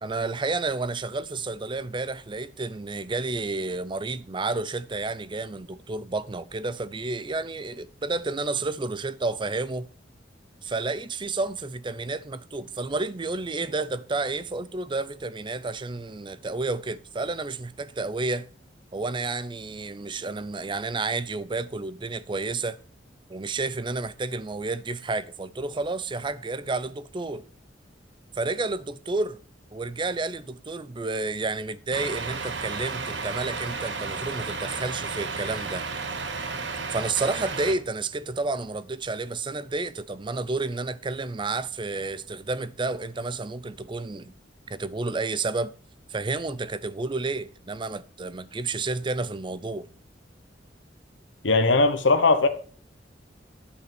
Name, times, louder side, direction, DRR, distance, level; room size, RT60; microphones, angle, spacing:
voice 1, 0.0-9.9 10.6-18.5 18.9-22.8 23.3-27.5 28.3-29.4 29.7-35.8 36.9-44.3 44.7-45.7 46.1-49.9, right 3 dB, 25° right, 0.5 m, -30 dB
Truck, 31.9-37.7, right 4 dB, 70° right, 1.2 m, -33 dB
voice 2, 51.4-52.5, left 3 dB, 85° left, 1.1 m, -19 dB
11.5 x 5.6 x 6.0 m
head